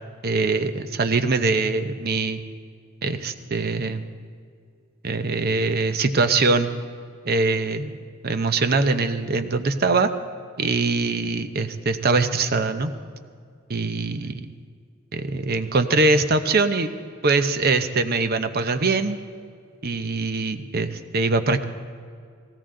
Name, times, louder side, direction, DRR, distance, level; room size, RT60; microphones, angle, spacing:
voice 1, 0.2-2.4 3.0-4.0 5.0-6.7 7.3-10.1 10.6-12.9 13.7-14.3 15.1-16.9 17.2-19.2 19.8-21.6, right 3 dB, 50° right, 9 dB, 0.8 m, -22 dB
18.0 x 16.0 x 3.8 m, 2.2 s
head